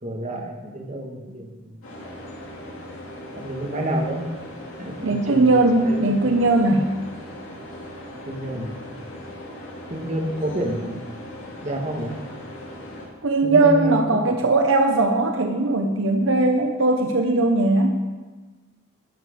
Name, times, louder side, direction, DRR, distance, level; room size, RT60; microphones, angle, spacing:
voice 1, 0.0-2.2 3.4-4.3 4.8-6.2 8.3-8.7 9.9-11.0 11.6-12.2 13.4-14.4, right 1 dB, 35° right, 1 dB, 1.5 m, -29 dB
sound 1, 1.8-13.1, equal, 75° left, 2.8 m, -39 dB
voice 2, 5.0-6.9 13.2-18.0, right 2 dB, 75° right, 4 dB, 0.8 m, -19 dB
12.5 x 6.0 x 6.6 m, 1.3 s
head